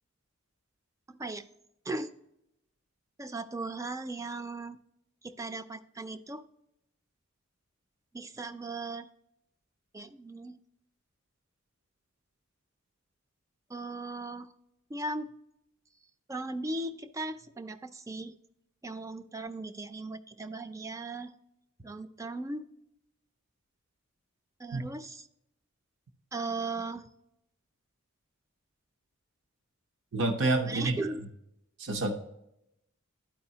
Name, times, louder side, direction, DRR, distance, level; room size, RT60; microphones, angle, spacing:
voice 1, 1.1-1.5 1.9-2.1 3.2-4.8 5.2-6.5 8.1-9.1 9.9-10.6 13.7-14.5 14.9-15.3 16.3-18.3 18.8-21.3 21.8-22.7 24.6-25.3 26.3-27.1 30.7-31.2, right 2 dB, 15° right, 10 dB, 0.4 m, -37 dB
voice 2, 30.1-31.0 31.8-32.2, right 2 dB, 60° right, 5 dB, 0.7 m, -28 dB
12.0 x 4.8 x 2.8 m, 0.82 s
head